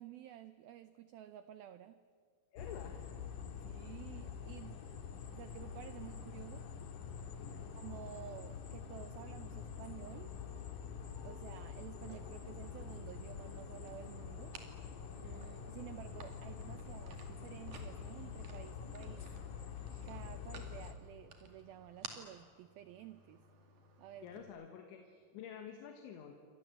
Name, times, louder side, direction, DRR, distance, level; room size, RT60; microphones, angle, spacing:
voice 1, 0.0-2.0 3.4-4.9 5.3-6.7 7.8-10.4 11.2-14.6 15.2-19.3 20.1-23.4 24.0-24.3, right 11 dB, 85° right, 12 dB, 2.1 m, -52 dB
voice 2, 2.5-3.2 7.4-7.7 24.2-26.3, left 8 dB, 80° left, 4 dB, 4.0 m, -50 dB
sound 1, 2.6-20.9, left 6 dB, 55° left, 2.7 m, -46 dB
sound 2, 11.9-24.4, right 4 dB, 50° right, 3.4 m, -57 dB
29.0 x 25.0 x 7.9 m, 2.2 s
omnidirectional pair, 5.3 m